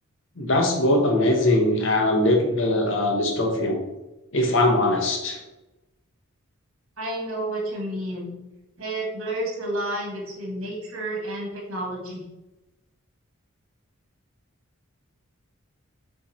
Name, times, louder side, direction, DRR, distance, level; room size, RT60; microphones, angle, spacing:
voice 1, 0.4-3.8 4.3-5.4, left 1 dB, 65° left, 3 dB, 1.2 m, -21 dB
voice 2, 7.0-8.4 8.8-12.2, right 1 dB, 75° right, -1 dB, 1.9 m, -30 dB
7.3 x 3.5 x 4.3 m, 0.99 s
head